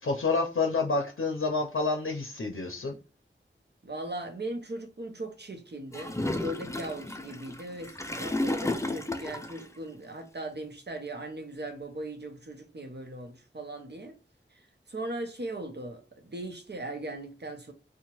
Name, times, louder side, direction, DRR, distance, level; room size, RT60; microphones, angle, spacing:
voice 1, 0.0-2.9, left 3 dB, 75° left, 0.5 m, -28 dB
voice 2, 3.8-14.2 14.9-17.7, right 2 dB, 55° right, 0.7 m, -39 dB
Gurgling / Toilet flush, 5.9-9.7, left 2 dB, 15° left, 0.4 m, -33 dB
2.8 x 2.1 x 3.0 m
wide cardioid pair, 45°, 21 cm